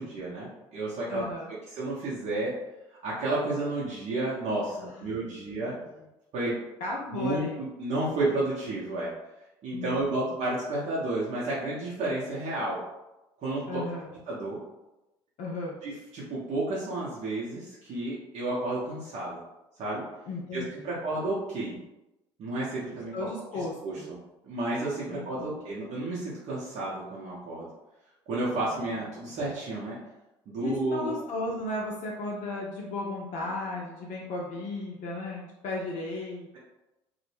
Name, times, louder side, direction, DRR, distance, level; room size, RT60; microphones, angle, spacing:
voice 1, 0.0-1.2 1.7-2.5 3.0-5.7 6.3-6.6 7.1-9.1 9.6-12.8 13.4-13.8 14.3-14.6 15.8-19.4 19.8-20.0 20.5-21.8 22.4-23.1 23.5-23.9 24.4-27.7 28.3-30.0 30.5-31.1, right 2 dB, 50° right, -7 dB, 0.7 m, -31 dB
voice 2, 1.1-1.6 4.8-5.9 6.8-7.6 9.7-10.3 13.7-14.1 15.4-15.8 20.3-21.0 23.1-24.1 25.1-25.6 30.6-36.6, left 2 dB, 55° left, -3 dB, 0.5 m, -35 dB
2.0 x 2.0 x 3.1 m, 0.98 s
hypercardioid pair, 60°, 15 cm